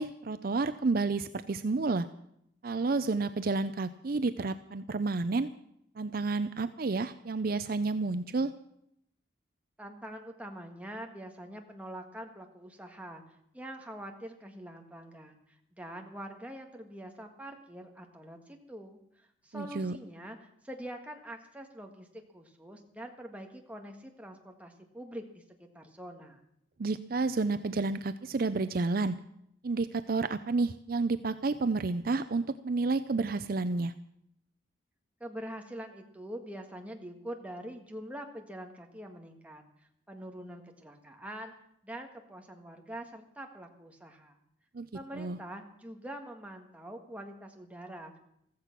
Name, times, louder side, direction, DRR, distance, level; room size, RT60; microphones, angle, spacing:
voice 1, 0.0-2.1 2.6-5.5 6.0-8.5 19.5-20.0 26.8-29.2 29.6-33.9 44.7-44.9 45.1-45.4, right 3 dB, 50° right, 12 dB, 0.5 m, -30 dB
voice 2, 9.8-13.2 13.5-26.4 35.2-39.6 40.1-41.5 41.8-44.4 44.9-48.2, right 1 dB, 5° right, 3 dB, 1.7 m, -44 dB
15.0 x 14.5 x 5.9 m, 0.74 s
head